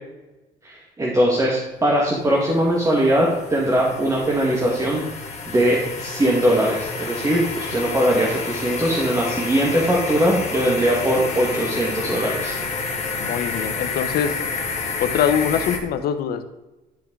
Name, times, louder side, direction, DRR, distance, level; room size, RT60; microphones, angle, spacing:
voice 1, 0.6-5.0 5.5-12.6, right 1 dB, 20° right, -3 dB, 1.4 m, -20 dB
sound 1, 1.9-15.8, left 4 dB, 40° left, 1.5 m, -29 dB
voice 2, 13.2-14.3 15.0-16.4, left 8 dB, 65° left, 10 dB, 0.7 m, -23 dB
10.5 x 4.6 x 3.6 m, 1.1 s
cardioid pair, 110°, 17 cm